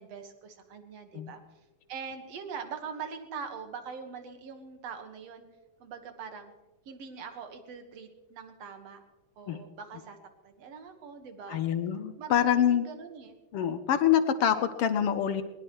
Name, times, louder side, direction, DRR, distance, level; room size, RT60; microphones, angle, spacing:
voice 1, 0.0-1.4 1.9-5.5 5.8-6.5 6.9-9.0 9.4-10.2 10.4-11.6 12.2-13.4, right 6 dB, 60° right, 6 dB, 2.5 m, -42 dB
voice 2, 11.5-12.9 13.5-15.4, left 9 dB, 70° left, 9 dB, 1.5 m, -26 dB
21.0 x 20.0 x 3.2 m, 1.1 s
omnidirectional pair, 3.5 m